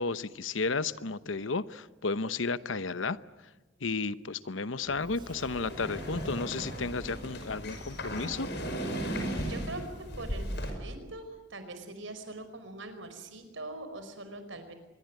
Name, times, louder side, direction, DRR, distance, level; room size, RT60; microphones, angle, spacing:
voice 1, 0.0-3.2 3.8-8.5, left 4 dB, 75° left, 15 dB, 0.9 m, -33 dB
Sliding door, 4.9-10.7, right 1 dB, 25° right, 2.0 m, -47 dB
sound 1, 5.4-10.7, equal, 60° left, 5.8 m, -36 dB
voice 2, 9.1-9.8 10.2-14.7, right 2 dB, 75° right, 9 dB, 5.0 m, -43 dB
25.5 x 21.5 x 9.6 m, 1.1 s
head